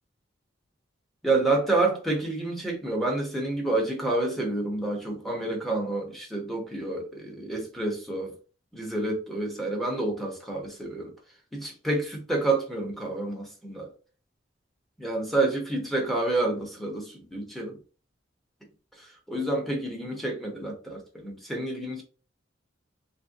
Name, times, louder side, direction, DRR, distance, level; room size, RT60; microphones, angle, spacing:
voice 1, 1.2-8.3 8.7-11.1 11.5-13.9 15.0-17.8 19.0-22.0, right 2 dB, ahead, 0.7 m, -29 dB
3.1 x 2.5 x 2.5 m
head